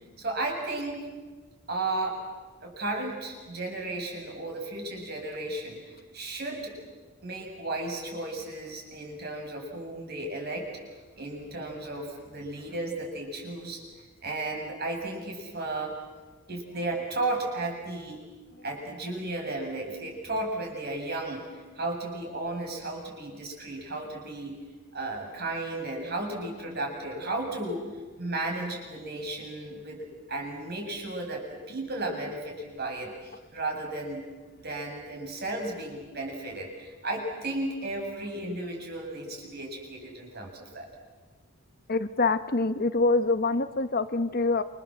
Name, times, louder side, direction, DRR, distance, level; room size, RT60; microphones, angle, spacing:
voice 1, 0.2-1.1 1.7-2.2 2.6-6.8 7.2-10.7 11.2-13.8 14.2-16.0 16.5-18.2 18.6-24.6 24.9-27.9 28.2-34.2 34.6-40.9, right 2 dB, 50° right, 1 dB, 7.5 m, -34 dB
voice 2, 41.9-44.6, left 3 dB, 45° left, 11 dB, 1.1 m, -25 dB
29.0 x 26.5 x 7.7 m, 1.3 s
head